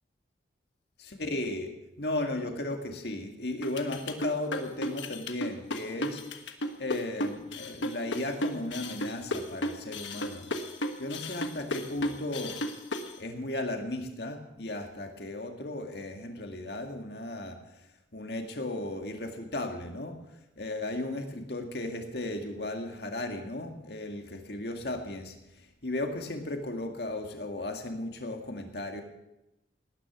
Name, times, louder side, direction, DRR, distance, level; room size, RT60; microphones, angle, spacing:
voice 1, 1.0-6.2 6.8-10.5 11.0-12.6 13.2-17.6 18.1-20.2 20.6-29.0, left 2 dB, 60° left, 4 dB, 2.0 m, -35 dB
sound 1, 3.6-13.1, left 1 dB, 80° left, 1.4 m, -33 dB
19.0 x 10.0 x 6.1 m, 0.92 s
head